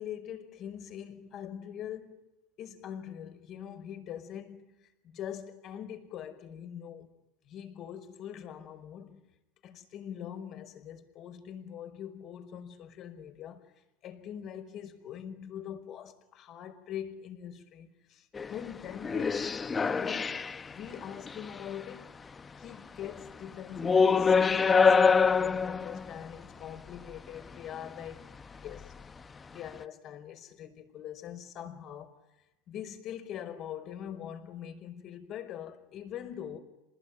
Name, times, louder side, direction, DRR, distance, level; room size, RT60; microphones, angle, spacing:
voice 1, 0.0-2.3 2.6-7.1 7.4-9.2 9.6-19.6 19.8-22.1 22.6-28.3 28.6-28.9 29.5-32.2 32.7-36.6, left 9 dB, 50° left, 5.2 m, -43 dB
sound 1, 18.3-18.6 19.0-20.7 21.1-21.5 23.0-23.1 23.8-26.2 28.8-28.9, left 5 dB, 20° left, 1.0 m, -24 dB
28.5 x 20.5 x 9.5 m
supercardioid pair, 115°, 0 cm